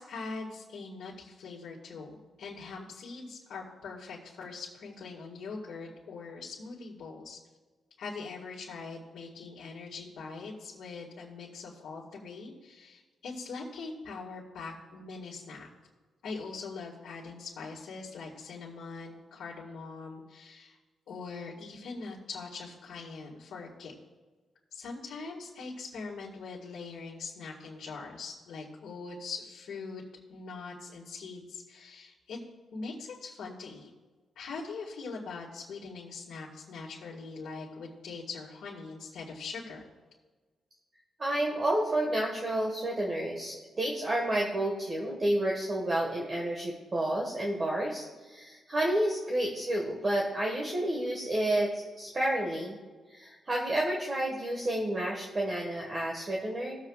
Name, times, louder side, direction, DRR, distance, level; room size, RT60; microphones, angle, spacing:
voice 1, 0.0-7.4 8.0-15.7 16.2-20.8 21.1-23.9 24.7-30.0 30.3-32.4 32.7-33.9 34.4-39.8, left 4 dB, 80° left, -6 dB, 1.9 m, -42 dB
voice 2, 41.2-52.8 53.1-56.8, right 1 dB, 30° right, -1 dB, 1.5 m, -30 dB
19.0 x 7.4 x 2.4 m, 1.3 s
cardioid pair, 125°, 0 cm